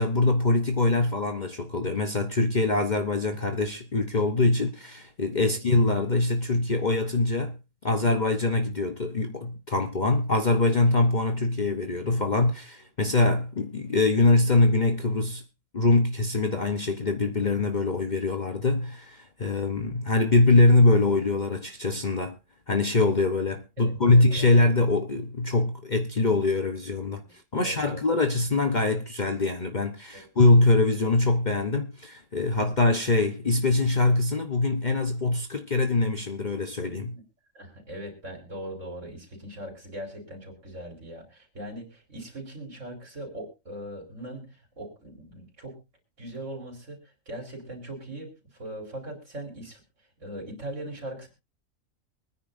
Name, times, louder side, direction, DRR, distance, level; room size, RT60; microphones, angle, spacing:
voice 1, 0.0-15.4 15.7-22.4 22.7-27.2 27.5-37.2, left 2 dB, 40° left, 1.0 m, -23 dB
voice 2, 23.8-24.5 27.2-27.3 27.6-28.0 30.1-30.3 32.5-32.6 37.1-37.2 37.5-45.8 46.2-49.8 50.2-51.3, right 1 dB, 65° right, 4.3 m, -40 dB
23.5 x 10.0 x 2.6 m
omnidirectional pair, 1.4 m